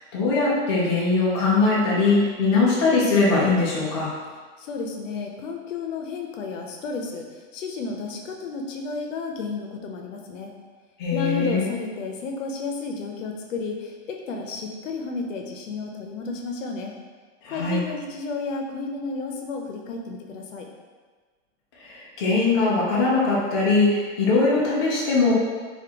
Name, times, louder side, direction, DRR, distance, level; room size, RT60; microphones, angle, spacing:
voice 1, 0.0-4.1 11.0-11.6 17.4-17.8 21.8-25.3, left 3 dB, 25° left, -6 dB, 0.4 m, -21 dB
voice 2, 4.6-10.5 11.1-16.9 17.5-20.7, left 4 dB, 85° left, 2 dB, 0.7 m, -32 dB
4.3 x 2.4 x 2.8 m, 1.4 s
supercardioid pair, 175°, 37 cm